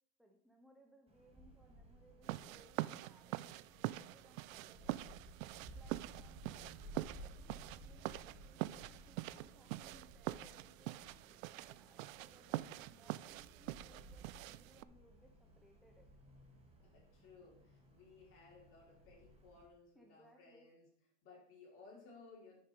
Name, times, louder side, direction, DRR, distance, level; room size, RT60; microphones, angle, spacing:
voice 1, 0.2-5.2 5.7-6.8 7.2-16.1 19.9-20.7, equal, ahead, 1 dB, 0.4 m, -67 dB
Wind, 1.1-19.7, right 1 dB, 15° right, 2.0 m, -58 dB
sound 1, 2.2-14.8, right 16 dB, 90° right, 0.5 m, -45 dB
voice 2, 16.8-20.9 21.2-22.6, left 4 dB, 35° left, -4 dB, 4.8 m, -60 dB
10.0 x 6.7 x 5.1 m, 0.68 s
supercardioid pair, 160°, 39 cm